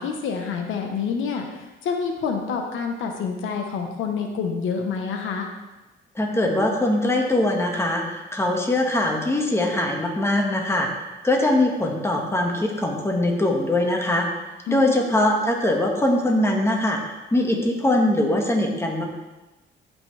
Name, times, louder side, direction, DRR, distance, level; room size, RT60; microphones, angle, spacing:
voice 1, 0.0-5.5 14.7-15.0, left 5 dB, 80° left, 3 dB, 1.1 m, -27 dB
voice 2, 6.2-14.3 14.7-17.0 17.3-19.1, left 1 dB, 15° left, 0 dB, 1.8 m, -22 dB
14.0 x 5.9 x 3.4 m, 1.1 s
cardioid pair, 90°, 20 cm